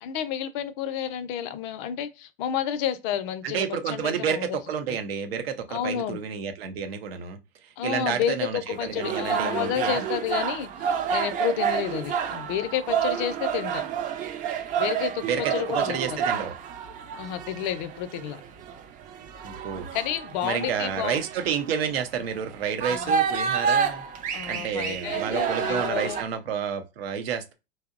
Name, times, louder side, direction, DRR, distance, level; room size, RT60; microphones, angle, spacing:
voice 1, 0.0-4.6 5.7-6.2 7.8-13.8 14.8-15.2 15.5-16.2 17.2-18.4 19.9-21.2 22.9-23.2 24.3-26.2, left 10 dB, 55° left, 0.4 m, -30 dB
voice 2, 3.4-10.0 15.2-16.5 19.4-19.9 20.4-24.0 24.5-27.5, right 7 dB, 80° right, 0.6 m, -30 dB
sound 1, 8.7-26.2, right 7 dB, 25° right, 0.3 m, -29 dB
2.7 x 2.0 x 2.4 m
hypercardioid pair, 100°, 30 cm